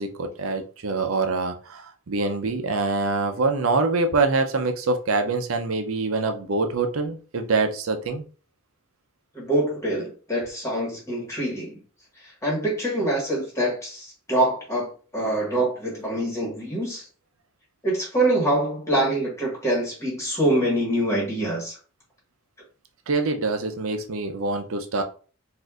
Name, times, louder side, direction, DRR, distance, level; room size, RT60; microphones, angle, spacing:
voice 1, 0.0-8.2 23.1-25.0, right 3 dB, 75° right, 6 dB, 0.6 m, -25 dB
voice 2, 9.3-11.8 12.2-14.9 15.1-17.0 17.8-21.8, right 1 dB, 15° left, -4 dB, 1.5 m, -25 dB
4.2 x 2.6 x 2.4 m, 0.39 s
head